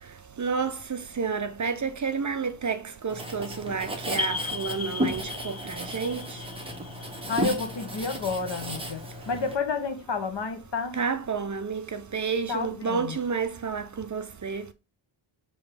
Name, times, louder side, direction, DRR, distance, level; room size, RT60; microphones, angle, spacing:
voice 1, 0.4-6.4 11.0-14.7, right 5 dB, 40° right, 0.5 m, -30 dB
Writing, 3.1-9.5, equal, 10° right, 1.1 m, -34 dB
sound 1, 4.2-8.6, left 4 dB, 30° left, 0.8 m, -37 dB
voice 2, 7.3-11.0 12.5-13.2, left 4 dB, 60° left, 1.2 m, -30 dB
6.9 x 3.0 x 4.8 m
wide cardioid pair, 180°, 48 cm